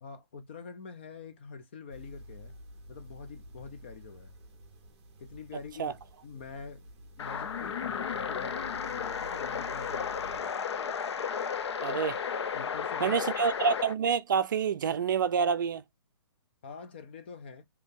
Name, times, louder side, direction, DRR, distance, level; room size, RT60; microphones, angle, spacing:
voice 1, 0.0-2.6 2.9-4.3 5.2-6.8 7.2-10.5 12.5-13.2 16.6-17.6, left 5 dB, 25° left, 0.3 m, -45 dB
sound 1, 1.9-10.4, equal, 20° right, 0.8 m, -50 dB
sound 2, 7.2-13.9, left 7 dB, 70° left, 0.6 m, -33 dB
voice 2, 11.8-12.2 13.0-15.8, right 6 dB, 45° right, 0.5 m, -27 dB
2.8 x 2.6 x 3.6 m
hypercardioid pair, 170°, 14 cm